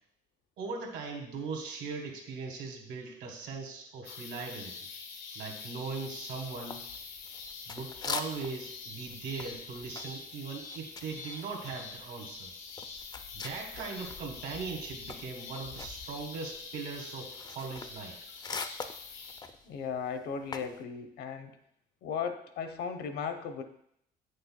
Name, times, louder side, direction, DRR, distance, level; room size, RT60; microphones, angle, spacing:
voice 1, 0.6-4.8 5.3-6.9 7.7-12.6 13.3-18.3, right 4 dB, 75° right, 1 dB, 1.4 m, -40 dB
sound 1, 4.0-19.4, left 5 dB, 90° left, 1.2 m, -45 dB
sound 2, 6.7-8.7 9.0-14.2 14.6-20.8, left 5 dB, 25° left, 0.4 m, -43 dB
voice 2, 19.7-21.6 22.0-23.6, left 6 dB, 70° left, 7 dB, 0.8 m, -36 dB
8.5 x 6.5 x 2.2 m, 0.73 s
cardioid pair, 110°, 17 cm